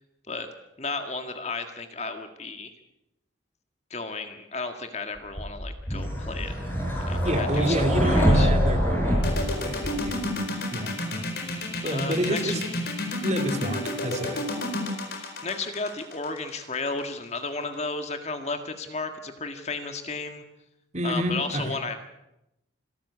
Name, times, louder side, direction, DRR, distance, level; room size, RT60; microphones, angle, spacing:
voice 1, 0.8-2.7 3.9-6.5 7.0-8.5 11.8-12.6 15.1-20.4 21.0-22.0, left 3 dB, 35° left, 7 dB, 1.8 m, -33 dB
sound 1, 5.4-10.3, equal, 10° left, 5.5 m, -24 dB
voice 2, 7.2-10.5 10.7-11.2 11.8-12.6 13.2-14.4 20.9-21.8, right 1 dB, 35° right, 5 dB, 2.8 m, -29 dB
sound 2, 9.2-17.0, left 2 dB, 55° left, 4.5 m, -30 dB
26.5 x 13.5 x 8.5 m, 0.90 s
head